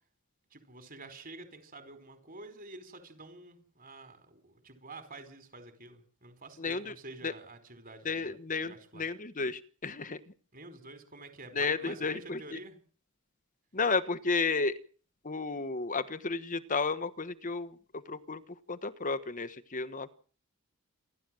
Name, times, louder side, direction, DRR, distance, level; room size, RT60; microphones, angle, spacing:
voice 1, 0.5-8.3 8.6-9.1 10.5-12.8, right 2 dB, 40° right, 9 dB, 4.8 m, -49 dB
voice 2, 6.6-6.9 7.2-7.3 8.0-10.2 11.5-12.4 13.7-14.7 15.2-17.8 18.1-18.4 18.7-20.1, left 4 dB, 35° left, 14 dB, 1.3 m, -32 dB
28.0 x 12.5 x 7.7 m, 0.44 s
head